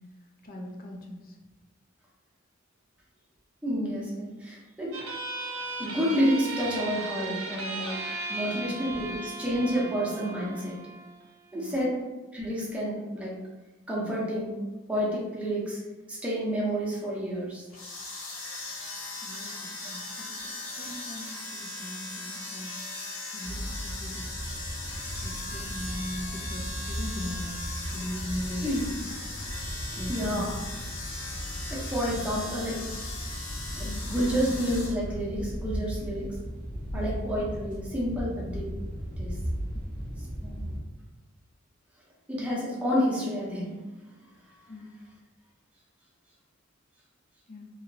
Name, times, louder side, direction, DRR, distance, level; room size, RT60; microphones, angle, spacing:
voice 1, 0.4-1.4 8.5-9.2 11.5-11.8 19.2-22.7 23.3-24.3 25.2-28.7 29.9-30.8 33.8-34.0 36.9-37.1 39.7-39.8 44.7-44.9 47.5-47.7, left 1 dB, 45° left, 1 dB, 0.5 m, -40 dB
voice 2, 3.6-4.9 5.7-7.9 8.3-10.8 11.5-11.9 12.3-13.3 13.9-14.5 14.9-15.8 16.1-17.6 28.6-28.8 30.1-30.5 31.7-32.8 33.7-36.3 36.9-38.7 39.2-39.3 40.4-40.7 42.3-43.7, equal, 5° right, -6 dB, 0.7 m, -29 dB
sound 1, 4.9-11.9, right 3 dB, 80° right, 0.6 m, -37 dB
sound 2, 17.7-34.9, left 2 dB, 85° left, 0.8 m, -39 dB
sound 3, 23.4-40.8, equal, 40° right, 0.7 m, -36 dB
2.9 x 2.7 x 2.7 m, 1.2 s
head